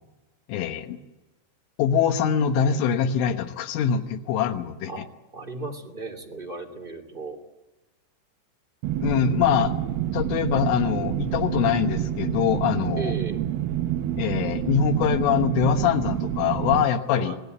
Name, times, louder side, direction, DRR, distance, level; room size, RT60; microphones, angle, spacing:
voice 1, 0.5-1.0 1.8-5.1 9.0-9.7 10.1-13.2 14.2-17.4, left 8 dB, 80° left, 7 dB, 3.6 m, -23 dB
voice 2, 5.3-7.4 12.9-13.5 17.1-17.4, right 3 dB, 20° right, 3 dB, 1.4 m, -35 dB
sound 1, 8.8-16.8, right 11 dB, 80° right, 2.2 m, -28 dB
25.5 x 18.5 x 8.1 m, 1.1 s
omnidirectional pair, 5.7 m